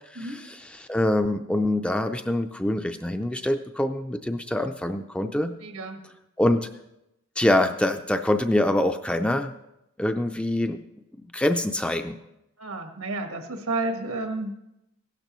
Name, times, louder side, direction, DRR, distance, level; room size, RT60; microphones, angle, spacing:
voice 1, 0.1-5.5 6.4-6.7 7.4-9.5 10.0-10.8 11.3-12.2, left 1 dB, 5° left, 7 dB, 0.4 m, -25 dB
voice 2, 5.6-6.0 12.6-14.5, right 2 dB, 85° right, 5 dB, 1.4 m, -31 dB
16.0 x 12.0 x 3.1 m, 0.87 s
head